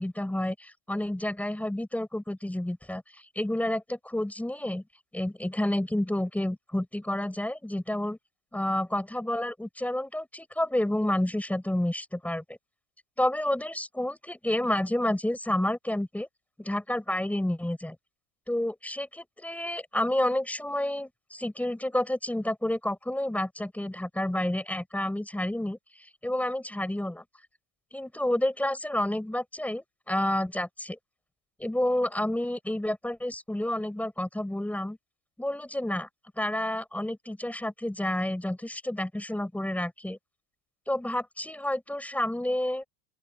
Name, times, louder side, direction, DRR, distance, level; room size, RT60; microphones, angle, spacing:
voice 1, 0.0-4.8 5.1-8.2 8.5-12.4 13.2-16.3 16.6-18.0 18.5-27.2 27.9-31.0 31.6-35.0 35.4-36.1 36.4-40.2 40.9-42.8, left 1 dB, 5° left, 6.8 m, -30 dB
open air
cardioid pair, 150°, 44 cm